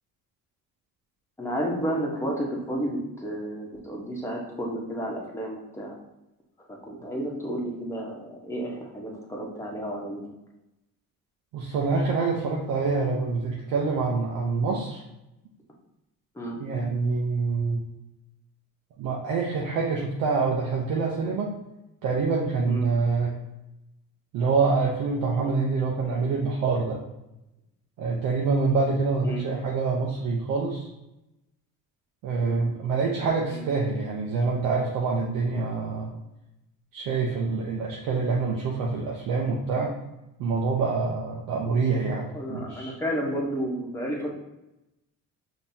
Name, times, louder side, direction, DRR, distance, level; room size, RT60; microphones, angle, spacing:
voice 1, 1.4-5.9 6.9-10.2 16.3-16.6 22.7-22.9 29.2-29.4 32.4-32.6 33.5-33.6 42.3-44.3, equal, 10° left, -2 dB, 1.1 m, -31 dB
voice 2, 11.5-15.0 16.6-17.8 19.0-21.5 22.0-23.3 24.3-27.0 28.0-30.9 32.2-36.1 36.9-40.0 40.4-43.0, right 4 dB, 80° right, -2 dB, 0.7 m, -26 dB
5.3 x 2.9 x 2.8 m, 0.92 s
cardioid pair, 95°, 34 cm